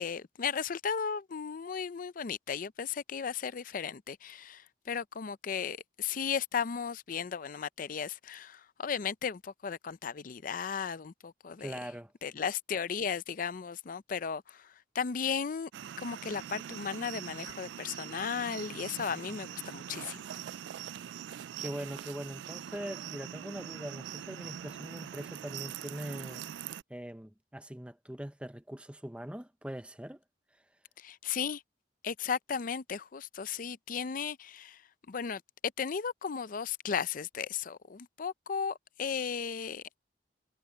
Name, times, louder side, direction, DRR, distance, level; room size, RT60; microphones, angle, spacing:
voice 1, 0.0-11.8 12.2-15.7 16.0-20.2 31.0-31.6 32.0-34.8 35.1-35.4 35.8-40.0, left 6 dB, 50° left, 0.5 m, -35 dB
voice 2, 11.6-12.1 21.6-26.4 26.9-30.2, equal, 5° right, 0.8 m, -42 dB
sound 1, 15.7-26.8, right 10 dB, 75° right, 0.3 m, -43 dB
head